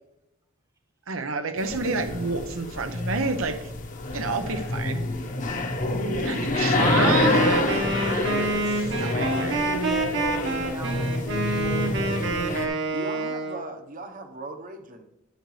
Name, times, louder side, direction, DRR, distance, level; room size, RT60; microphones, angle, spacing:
voice 1, 1.1-3.6 4.1-5.0 6.2-7.4 8.2-9.7, right 4 dB, 80° right, 8 dB, 0.8 m, -29 dB
sound 1, 1.6-12.7, left 2 dB, 40° left, 1.0 m, -27 dB
voice 2, 5.8-6.4 12.9-15.0, right 2 dB, 40° right, 6 dB, 1.0 m, -39 dB
Wind instrument woodwind instrument, 7.0-13.6, right 2 dB, 60° right, 1.4 m, -28 dB
voice 3, 7.6-8.7 9.1-9.4 10.6-12.1, right 2 dB, 15° right, 7 dB, 0.4 m, -39 dB
10.5 x 8.0 x 3.2 m, 0.91 s
head